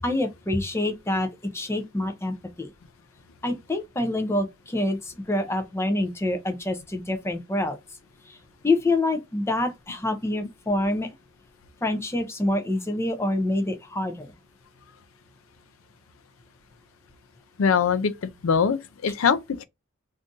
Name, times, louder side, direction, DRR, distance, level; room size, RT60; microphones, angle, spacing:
voice 1, 0.0-2.7 3.4-7.8 8.3-8.4 8.6-11.1 11.8-14.3, left 2 dB, 15° left, 0.5 m, -26 dB
voice 2, 17.6-18.1 18.4-19.6, left 6 dB, 75° left, 0.4 m, -22 dB
2.6 x 2.5 x 3.6 m
head